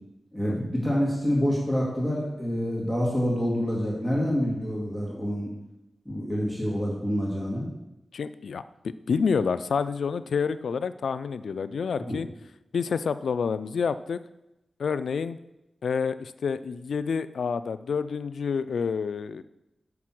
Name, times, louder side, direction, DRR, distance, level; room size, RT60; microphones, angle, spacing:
voice 1, 0.3-5.5 6.1-7.7 12.0-12.2, equal, ahead, -4 dB, 2.2 m, -27 dB
voice 2, 8.1-8.6 9.1-12.3 12.7-14.2 14.8-15.4 15.8-19.4, left 5 dB, 85° left, 14 dB, 0.3 m, -28 dB
5.9 x 5.8 x 6.3 m, 0.93 s
wide cardioid pair, 75°, 0 cm